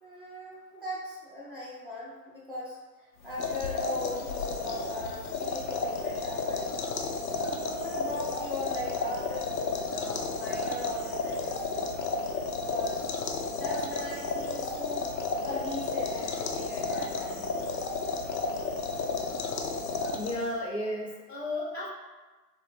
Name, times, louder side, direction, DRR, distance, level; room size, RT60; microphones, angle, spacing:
voice 1, 0.0-2.8 3.2-6.7 7.3-12.0 12.5-13.1 13.5-15.1 15.4-17.5, left 1 dB, 35° right, -7 dB, 0.4 m, -39 dB
sound 1, 3.2-20.6, left 4 dB, 90° left, 0.6 m, -32 dB
voice 2, 20.1-21.9, left 1 dB, 45° left, -3 dB, 0.5 m, -33 dB
2.7 x 2.1 x 3.2 m, 1.2 s
hypercardioid pair, 145°, 50 cm